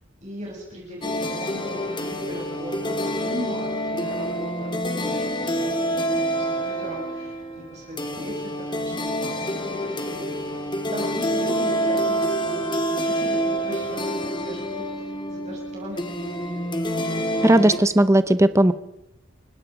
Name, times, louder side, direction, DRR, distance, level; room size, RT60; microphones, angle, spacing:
voice 1, 0.2-8.4 8.7-10.5 10.9-12.8 13.1-16.6, equal, 35° right, -3 dB, 7.6 m, -38 dB
sound 1, 1.0-17.8, equal, 25° left, 2.3 m, -27 dB
voice 2, 17.4-18.7, right 1 dB, 15° right, 13 dB, 0.9 m, -16 dB
29.5 x 17.5 x 5.2 m, 0.89 s
head